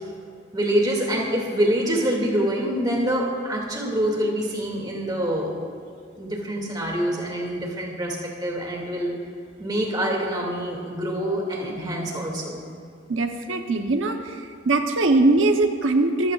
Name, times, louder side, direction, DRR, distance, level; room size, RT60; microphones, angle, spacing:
voice 1, 0.5-5.5 6.2-8.2 8.4-9.2 9.6-12.6, equal, 20° right, -1 dB, 2.5 m, -25 dB
voice 2, 13.1-14.4 14.6-16.3, right 2 dB, 90° right, 4 dB, 1.0 m, -21 dB
24.5 x 16.0 x 2.5 m, 2.3 s
head